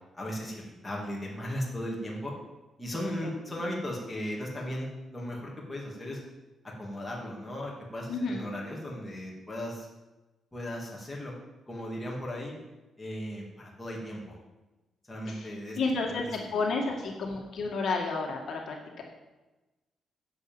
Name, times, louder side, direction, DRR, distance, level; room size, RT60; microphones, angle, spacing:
voice 1, 0.1-2.3 2.8-6.2 6.8-9.9 10.5-11.4 11.7-12.6 13.0-14.4 15.1-15.8, equal, 10° left, -3 dB, 2.6 m, -36 dB
voice 2, 2.9-3.3 8.1-8.4 15.3-19.0, left 3 dB, 55° left, 0 dB, 2.0 m, -32 dB
10.5 x 7.4 x 7.9 m, 1.1 s
cardioid pair, 165°, 0 cm